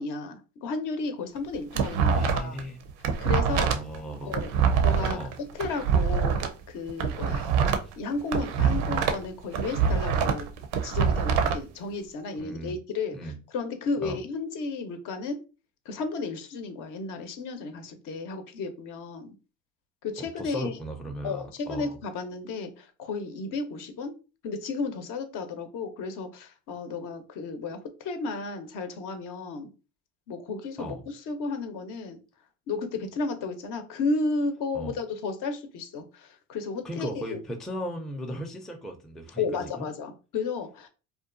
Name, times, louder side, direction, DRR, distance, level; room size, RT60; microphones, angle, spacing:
voice 1, 0.0-2.6 3.2-3.7 4.2-4.5 4.8-5.2 5.5-7.5 8.0-10.5 10.8-15.4 15.9-19.3 20.0-20.8 21.2-24.2 24.4-29.7 30.3-32.2 32.7-37.4 39.4-40.9, left 4 dB, 55° left, 0.6 m, -33 dB
sound 1, 1.4-2.6 2.9-6.5 6.9-9.2 9.5-11.6, right 6 dB, 80° right, 0.5 m, -24 dB
voice 2, 2.1-2.8 3.5-4.4 5.1-5.3 7.2-7.4 7.8-7.9 12.4-12.8 13.1-13.4 14.0-14.2 20.2-22.0 30.8-31.0 34.7-34.9 36.8-39.9, equal, ahead, 0.4 m, -36 dB
2.7 x 2.2 x 2.4 m
hypercardioid pair, 75°, 37 cm